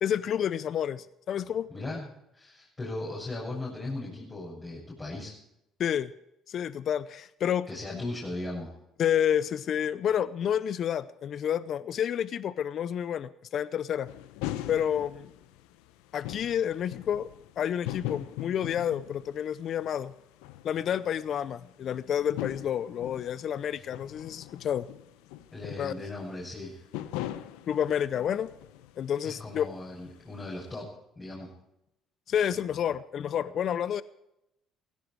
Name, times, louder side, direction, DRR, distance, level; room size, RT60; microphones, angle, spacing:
voice 1, 0.0-1.7 5.8-6.1 6.5-7.7 9.0-14.1 14.7-15.3 16.1-17.3 17.6-20.1 20.6-24.9 25.8-25.9 27.7-28.5 29.0-29.7 32.3-34.0, left 9 dB, 60° left, 17 dB, 0.6 m, -29 dB
voice 2, 1.7-2.1 2.3-5.3 7.7-8.7 25.5-26.8 29.2-30.9 31.2-31.5, left 2 dB, 30° left, -5 dB, 7.3 m, -37 dB
sound 1, 14.1-29.2 29.4-30.4, left 14 dB, 85° left, 0.9 m, -41 dB
17.0 x 17.0 x 4.7 m, 0.85 s
supercardioid pair, 70°, 0 cm